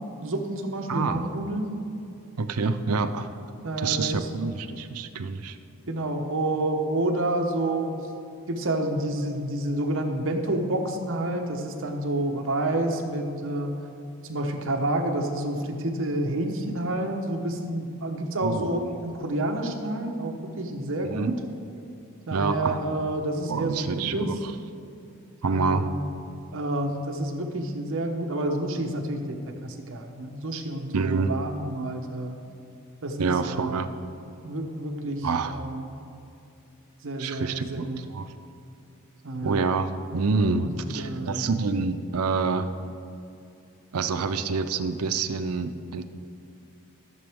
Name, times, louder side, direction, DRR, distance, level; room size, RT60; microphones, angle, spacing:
voice 1, 0.2-1.7 3.6-4.5 5.9-8.0 8.5-13.7 14.2-21.3 22.3-24.3 25.4-26.1 26.5-32.3 33.0-33.9 34.4-35.9 37.0-38.0 39.2-39.7 40.6-41.5, right 1 dB, 65° right, 3 dB, 1.0 m, -29 dB
voice 2, 0.9-1.3 2.4-3.3 3.8-5.6 18.4-18.9 21.1-21.3 22.3-22.8 23.5-24.5 25.4-25.9 30.9-31.3 33.2-33.9 35.2-35.6 37.2-38.3 39.4-42.7 43.9-46.0, right 4 dB, 85° right, 10 dB, 0.6 m, -27 dB
14.5 x 6.9 x 3.5 m, 2.6 s
head